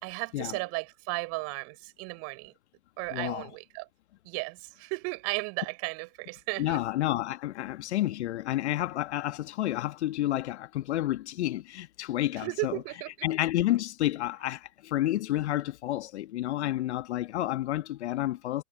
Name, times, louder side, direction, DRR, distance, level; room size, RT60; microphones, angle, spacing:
voice 1, 0.0-2.5 3.0-3.9 4.2-6.8 12.4-13.3, right 30 dB, 30° right, 4.9 m, -35 dB
voice 2, 3.1-3.5 6.6-12.8 13.2-18.6, left 14 dB, 45° left, 1.5 m, -30 dB
figure-of-eight pair, 120°, 46 cm